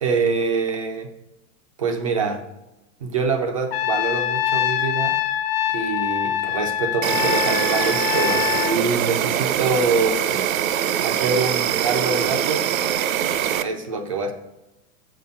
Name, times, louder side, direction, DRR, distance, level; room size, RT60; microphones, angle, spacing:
voice 1, 0.0-1.1 1.8-2.4 3.0-5.2 5.7-10.4 11.0-12.7 13.6-14.3, right 4 dB, 25° right, 5 dB, 0.3 m, -25 dB
Trumpet, 3.7-8.8, left 11 dB, 45° left, 0.5 m, -24 dB
Insect, 7.0-13.6, right 10 dB, 70° right, 0.6 m, -23 dB
7.9 x 4.1 x 5.4 m, 0.97 s
supercardioid pair, 155°, 43 cm